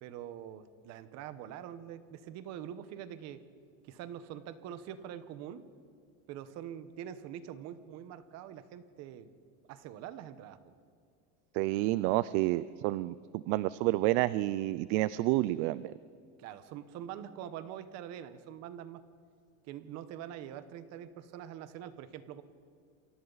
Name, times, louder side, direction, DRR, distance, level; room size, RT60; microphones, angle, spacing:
voice 1, 0.0-3.4 3.9-5.6 6.3-9.3 9.7-10.7 16.4-19.0 19.6-22.4, right 10 dB, 45° right, 12 dB, 1.1 m, -44 dB
voice 2, 11.5-15.9, right 17 dB, 60° right, 17 dB, 0.5 m, -29 dB
28.5 x 24.0 x 4.0 m, 2.4 s
cardioid pair, 175°, 37 cm